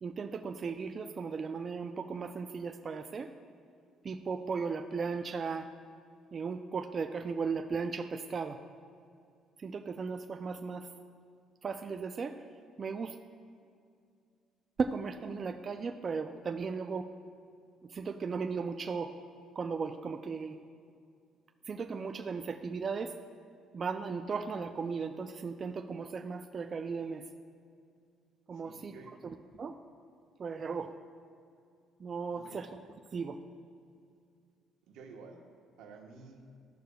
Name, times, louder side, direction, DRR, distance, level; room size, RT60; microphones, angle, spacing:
voice 1, 0.0-3.3 4.0-5.7 6.3-8.6 9.6-10.9 11.6-12.4 12.8-13.2 14.8-17.1 17.8-19.1 19.6-20.6 21.7-23.1 23.7-27.2 28.5-28.9 29.2-29.8 30.4-30.9 32.0-32.8 33.1-33.4, right 5 dB, 35° right, 5 dB, 0.3 m, -36 dB
voice 2, 28.5-29.1 32.3-32.6 34.9-35.4 35.8-36.4, right 4 dB, 90° right, 1 dB, 1.1 m, -51 dB
14.0 x 6.5 x 2.3 m, 2.3 s
cardioid pair, 125°, 0 cm